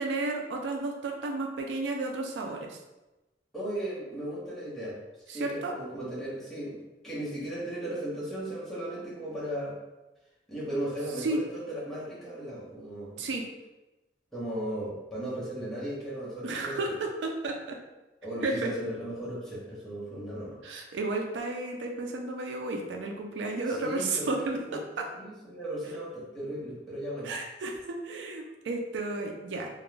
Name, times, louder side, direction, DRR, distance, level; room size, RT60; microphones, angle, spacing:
voice 1, 0.0-2.8 5.3-5.7 11.2-11.4 13.2-13.5 16.4-17.8 18.4-18.7 20.6-24.6 25.0-25.1 27.2-29.7, right 2 dB, 80° right, 2 dB, 0.4 m, -32 dB
voice 2, 3.5-5.0 5.3-9.8 10.5-13.3 14.3-16.8 18.2-20.6 23.7-24.8 25.1-27.3, right 1 dB, ahead, -8 dB, 0.7 m, -36 dB
2.4 x 2.1 x 3.1 m, 1.0 s
head